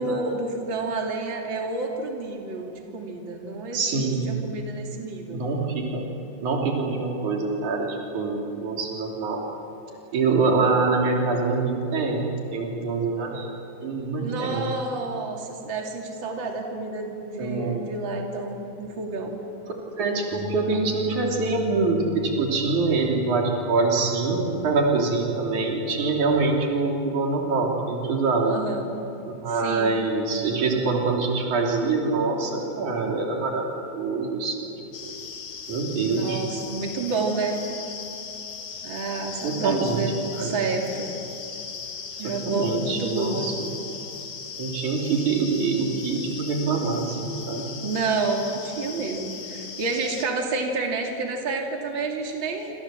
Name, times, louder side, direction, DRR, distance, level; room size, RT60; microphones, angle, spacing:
voice 1, 0.0-5.4 14.2-19.3 28.4-28.9 29.5-30.0 36.0-37.6 38.8-41.1 42.2-43.5 45.1-45.3 47.8-52.7, right 3 dB, 40° right, 1 dB, 3.2 m, -29 dB
voice 2, 3.7-4.3 5.3-6.1 6.4-9.4 10.1-14.7 17.4-17.8 20.0-28.6 29.2-33.7 33.9-34.7 35.0-35.1 35.7-36.4 39.4-40.6 42.2-43.5 44.6-47.7, right 3 dB, 90° right, 0 dB, 4.5 m, -25 dB
Bass guitar, 20.3-26.6, left 1 dB, 60° right, 4.2 m, -41 dB
sound 1, 34.9-50.3, left 5 dB, 55° left, 2.7 m, -38 dB
27.5 x 26.5 x 7.6 m, 2.9 s
omnidirectional pair, 3.3 m